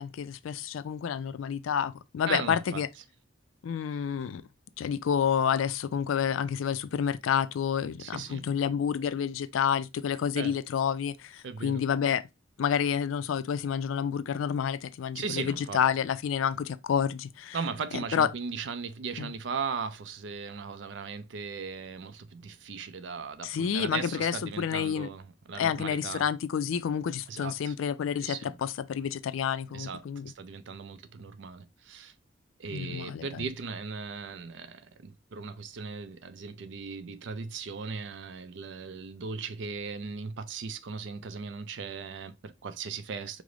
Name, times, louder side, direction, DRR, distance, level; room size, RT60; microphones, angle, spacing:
voice 1, 0.0-2.9 3.6-4.4 4.8-12.3 12.6-17.6 17.9-18.3 19.2-19.3 23.4-25.1 25.6-30.3 32.7-33.5, left 8 dB, 90° left, 0.4 m, -29 dB
voice 2, 2.3-2.8 8.0-8.5 10.4-10.6 11.4-11.8 15.1-15.8 17.5-26.2 27.3-27.7 28.2-28.6 29.7-30.1 30.4-32.1 32.6-43.4, right 5 dB, 65° right, 0.4 m, -38 dB
4.7 x 2.0 x 3.7 m
head